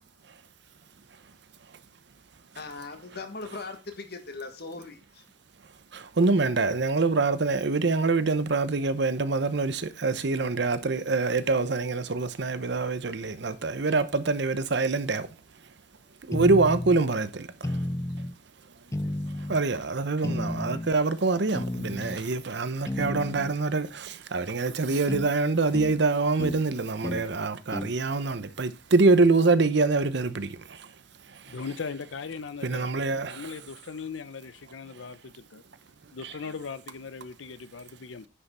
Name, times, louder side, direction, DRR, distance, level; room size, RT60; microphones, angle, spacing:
voice 1, 2.5-5.2 22.0-22.2, left 3 dB, 55° left, 1.5 m, -40 dB
voice 2, 5.9-15.4 16.2-17.9 18.2-18.3 19.0-31.6 32.6-33.5 36.2-36.3, right 3 dB, 60° right, 0.8 m, -25 dB
sound 1, 16.3-17.0 17.6-18.3 18.9-19.6 20.2-20.9 21.5-22.2 22.9-23.5 25.1-25.3 25.7-26.0 26.4-26.6 27.0-27.3 27.7-27.9, left 1 dB, 15° left, 0.4 m, -32 dB
voice 3, 31.5-32.9 33.2-35.6 36.1-38.3, left 5 dB, 80° left, 0.6 m, -39 dB
9.8 x 5.7 x 4.2 m
head